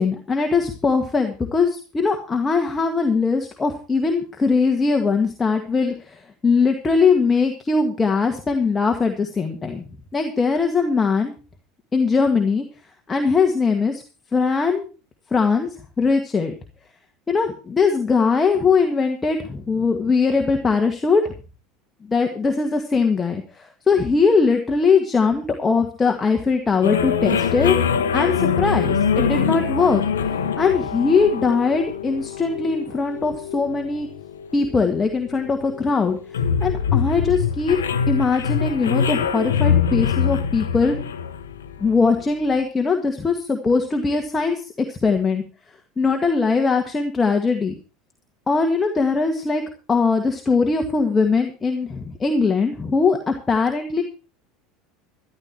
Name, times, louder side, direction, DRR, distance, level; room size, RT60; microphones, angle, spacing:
voice 1, 0.0-9.8 10.1-11.3 11.9-12.6 13.1-14.0 14.3-14.9 15.3-15.7 16.0-16.5 17.3-21.2 22.1-27.8 28.1-34.1 34.5-36.2 36.6-37.8 38.1-41.0 41.8-45.4 46.0-47.7 48.5-49.6 49.9-54.0, left 4 dB, 20° left, 4 dB, 1.8 m, -20 dB
sound 1, 26.8-42.2, left 7 dB, 80° left, 1.0 m, -24 dB
13.5 x 12.0 x 4.6 m, 0.34 s
hypercardioid pair, 75°, 0 cm